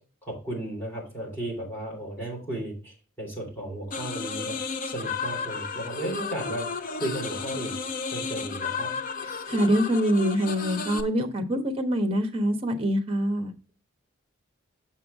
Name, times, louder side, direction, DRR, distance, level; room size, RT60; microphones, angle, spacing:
voice 1, 0.2-4.6 4.8-6.7 6.9-7.8 8.1-8.9, right 1 dB, 10° left, -3 dB, 3.3 m, -34 dB
sound 1, 3.9-11.0, left 5 dB, 40° left, 0.5 m, -33 dB
voice 2, 9.5-13.5, equal, 25° right, 6 dB, 1.1 m, -25 dB
7.0 x 5.8 x 3.6 m, 0.36 s
head